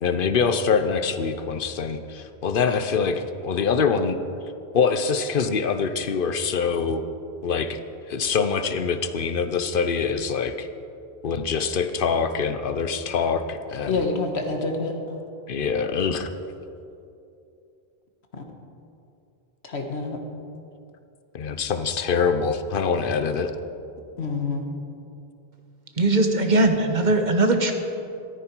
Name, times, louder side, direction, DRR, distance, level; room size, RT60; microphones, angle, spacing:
voice 1, 0.0-4.2 4.7-7.0 7.4-7.8 8.1-10.7 11.2-14.0 15.5-16.3 21.3-23.5, left 5 dB, 60° left, 9 dB, 0.9 m, -24 dB
voice 2, 13.9-15.2 18.3-18.4 19.6-20.2 24.2-24.7, left 3 dB, 85° left, 3 dB, 1.7 m, -27 dB
voice 3, 26.0-27.7, right 2 dB, 45° right, 5 dB, 1.3 m, -20 dB
14.0 x 13.5 x 4.6 m, 2.7 s
omnidirectional pair, 1.1 m